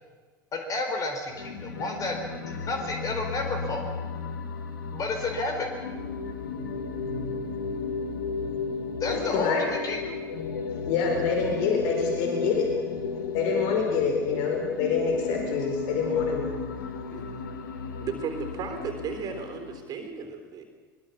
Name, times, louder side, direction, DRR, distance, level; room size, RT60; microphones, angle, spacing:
voice 1, 0.5-3.9 4.9-5.8 9.0-10.2, left 3 dB, 30° left, 4 dB, 4.4 m, -31 dB
sound 1, 1.3-19.9, left 4 dB, 70° left, 2.5 m, -34 dB
voice 2, 9.1-9.6 10.8-12.7 13.3-16.4, left 5 dB, 55° left, 2 dB, 4.6 m, -26 dB
voice 3, 18.0-20.7, right 6 dB, 35° right, 6 dB, 3.7 m, -35 dB
23.5 x 23.0 x 7.1 m, 1.5 s
figure-of-eight pair, 75°, 11 cm